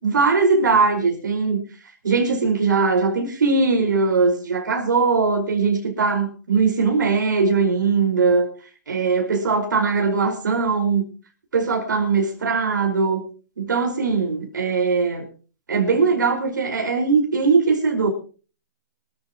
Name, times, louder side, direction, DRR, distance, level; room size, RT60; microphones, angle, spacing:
voice 1, 0.0-1.6 2.0-8.5 8.9-11.0 11.5-13.2 13.6-15.3 15.7-18.1, right 4 dB, 90° right, 2 dB, 5.1 m, -20 dB
25.5 x 14.0 x 3.0 m, 0.38 s
hypercardioid pair, 140°, 10 cm